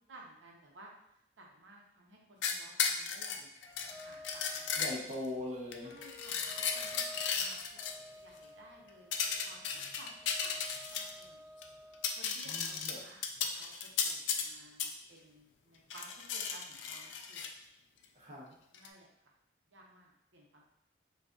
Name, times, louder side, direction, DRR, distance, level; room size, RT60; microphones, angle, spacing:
voice 1, 0.1-0.9 1.4-3.5 3.9-4.8 5.8-7.8 8.1-9.1 9.4-10.1 10.4-11.4 12.2-17.5 18.7-19.1 19.7-20.7, right 2 dB, 90° right, -2 dB, 0.9 m, -57 dB
sound 1, 2.4-5.3 5.7-7.9 9.1-11.2 11.6-11.7 11.9-14.5 14.8-14.9 15.9-17.5 18.7-18.9, left 6 dB, 80° left, 0.4 m, -35 dB
sound 2, 3.7-12.1, left 1 dB, 15° left, 0.5 m, -52 dB
voice 2, 4.7-5.9 12.4-13.0 18.1-18.5, left 1 dB, 40° right, -6 dB, 1.0 m, -41 dB
4.9 x 2.5 x 2.5 m, 0.80 s
head